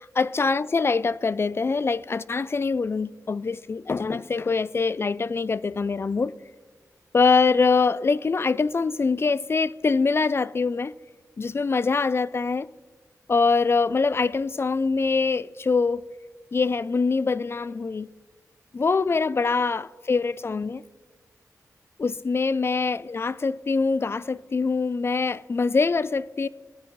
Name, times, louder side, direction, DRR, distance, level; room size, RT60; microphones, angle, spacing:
voice 1, 0.0-6.3 7.1-10.9 11.4-12.7 13.3-16.0 16.5-18.1 18.7-20.8 22.0-26.5, left 4 dB, 40° left, 0.4 m, -24 dB
18.0 x 9.3 x 3.1 m
cardioid pair, 60°, 6 cm